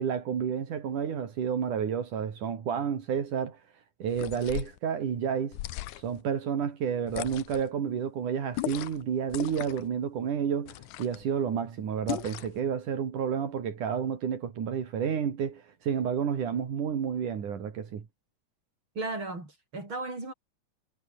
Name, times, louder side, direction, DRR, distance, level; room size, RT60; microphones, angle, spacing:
voice 1, 0.0-3.6 4.0-5.6 6.0-18.0, right 7 dB, 80° right, 4.3 m, -30 dB
sound 1, 4.1-4.8 5.5-6.2 7.1-7.7 8.5-9.0 9.3-9.9 10.7-11.2 12.1-12.6, left 16 dB, 80° left, 2.3 m, -37 dB
voice 2, 19.0-20.3, right 2 dB, 40° right, 8.6 m, -35 dB
omnidirectional pair, 3.5 m